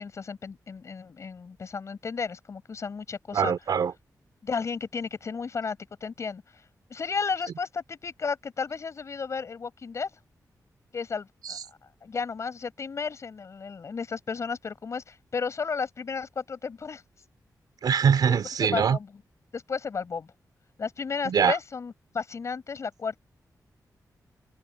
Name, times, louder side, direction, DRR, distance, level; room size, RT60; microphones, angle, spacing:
voice 1, 0.0-3.5 4.4-6.4 6.9-10.1 10.9-11.6 12.0-17.0 18.6-19.1 19.5-20.3 20.8-23.2, left 5 dB, 45° left, 6.0 m, -33 dB
voice 2, 3.3-3.9 11.4-11.6 17.8-19.0 21.2-21.6, right 7 dB, 80° right, 3.4 m, -23 dB
wide cardioid pair, 175°, 7 cm